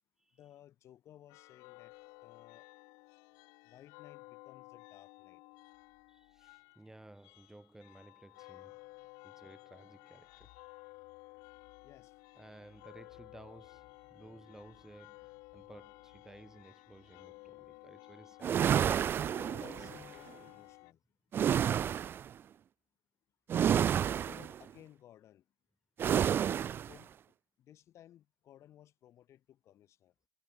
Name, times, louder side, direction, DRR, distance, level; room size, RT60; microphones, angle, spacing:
voice 1, 0.3-1.9 2.2-2.7 3.6-5.4 11.6-12.1 19.5-21.0 24.2-25.5 26.9-27.1 27.6-30.1, left 12 dB, 55° left, 6.7 m, -58 dB
sound 1, 1.3-20.9, left 27 dB, 75° left, 1.5 m, -55 dB
voice 2, 6.1-8.8 9.2-10.7 12.4-19.2, right 1 dB, 10° right, 2.6 m, -56 dB
sound 2, 18.4-20.0 21.3-22.3 23.5-24.6 26.0-26.9, right 9 dB, 40° right, 0.4 m, -30 dB
supercardioid pair, 100°, 6 cm